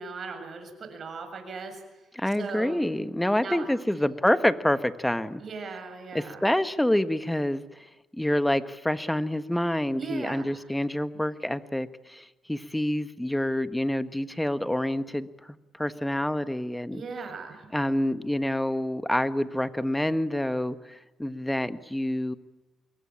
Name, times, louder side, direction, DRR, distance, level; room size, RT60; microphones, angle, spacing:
voice 1, 0.0-1.8 2.4-2.8 3.4-3.7 5.4-6.4 9.9-10.6 16.9-17.7, right 4 dB, 50° right, 6 dB, 7.3 m, -38 dB
voice 2, 2.1-5.4 6.1-7.8 8.1-17.0 17.7-22.3, left 1 dB, 5° left, 12 dB, 1.5 m, -27 dB
25.5 x 23.0 x 8.8 m, 1.1 s
cardioid pair, 90°, 0 cm